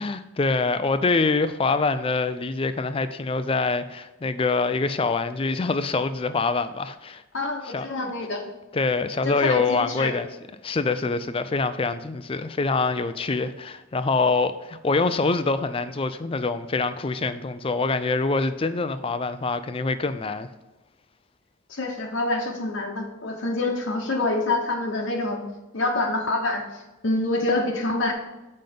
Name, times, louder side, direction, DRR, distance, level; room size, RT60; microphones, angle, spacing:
voice 1, 0.0-7.2 7.7-8.1 8.7-10.3 10.6-20.5, left 3 dB, 25° left, 0.4 m, -25 dB
voice 2, 7.3-8.5 9.2-10.1 21.7-25.4 25.7-28.1, left 2 dB, 60° left, 1.0 m, -26 dB
7.7 x 5.2 x 5.2 m
head